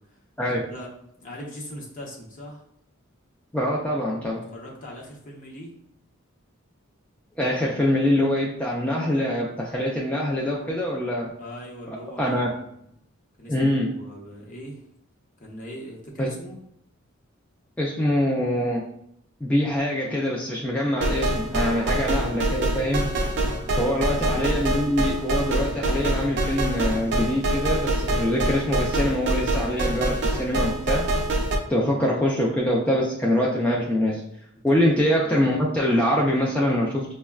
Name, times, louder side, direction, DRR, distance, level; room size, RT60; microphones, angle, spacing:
voice 1, 0.5-0.9 1.2-2.6 4.5-5.7 11.4-12.7 13.4-14.8 15.4-16.6 21.6-22.3 23.4-24.3 34.7-34.8, equal, 40° left, -2 dB, 0.8 m, -40 dB
voice 2, 3.5-4.5 7.4-11.3 12.2-12.5 13.5-14.0 16.2-16.3 17.8-18.9 19.4-23.0 23.8-31.1 31.7-34.2 34.6-37.1, left 1 dB, 5° left, -4 dB, 0.3 m, -24 dB
sound 1, 21.0-31.6, right 1 dB, 55° right, 0.5 m, -25 dB
5.0 x 2.1 x 2.3 m, 0.73 s
head